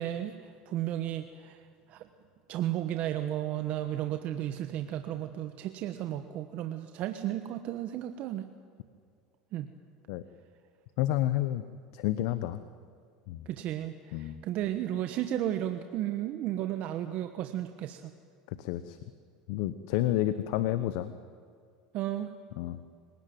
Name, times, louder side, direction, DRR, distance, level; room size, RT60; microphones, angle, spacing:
voice 1, 0.0-1.6 1.9-2.1 2.5-8.5 9.5-9.7 13.4-18.1 21.9-22.4, right 12 dB, 55° right, 8 dB, 1.2 m, -34 dB
voice 2, 11.0-11.6 11.9-12.6 13.3-13.5 14.1-14.4 18.5-19.0 19.5-21.1 22.6-22.8, left 14 dB, 70° left, 12 dB, 1.0 m, -30 dB
25.5 x 17.5 x 9.4 m, 2.2 s
supercardioid pair, 100°, 3 cm